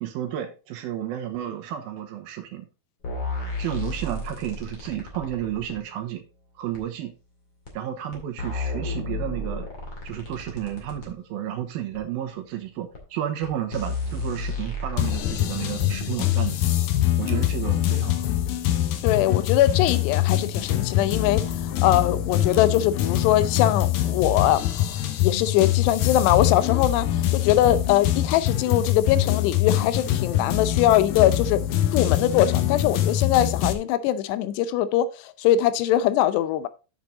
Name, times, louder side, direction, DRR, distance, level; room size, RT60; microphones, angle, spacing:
voice 1, 0.0-2.6 3.6-6.2 6.6-7.1 7.7-9.7 10.0-16.6 17.2-18.3, right 11 dB, 75° right, 2.5 m, -32 dB
sound 1, 3.0-5.8 6.7-6.8 7.7-7.8 8.1-11.1 11.9-12.0 12.9-13.0 13.4-13.5 13.7-16.4 17.5-17.6, left 2 dB, 35° left, 2.4 m, -33 dB
sound 2, 15.0-33.7, left 12 dB, 70° left, 2.3 m, -24 dB
voice 2, 19.0-24.9 25.2-31.6 31.9-36.7, left 12 dB, 90° left, 2.8 m, -22 dB
7.5 x 7.3 x 3.8 m
omnidirectional pair, 4.8 m